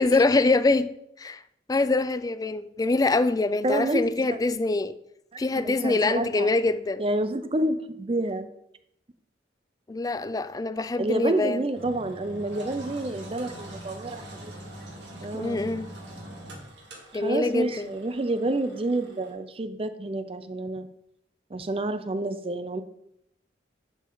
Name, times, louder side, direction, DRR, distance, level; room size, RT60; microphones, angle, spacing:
voice 1, 0.0-1.4 1.7-4.9 5.4-7.0 9.9-11.6 15.3-15.9 17.1-17.9, left 3 dB, 20° left, 0.3 m, -24 dB
voice 2, 3.6-4.4 5.3-6.5 7.0-8.5 11.0-14.5 15.2-15.6 17.1-20.9 21.5-22.8, right 2 dB, 30° right, 0.5 m, -29 dB
Engine, 11.7-19.3, right 1 dB, 80° right, 2.3 m, -43 dB
11.0 x 5.1 x 3.9 m
head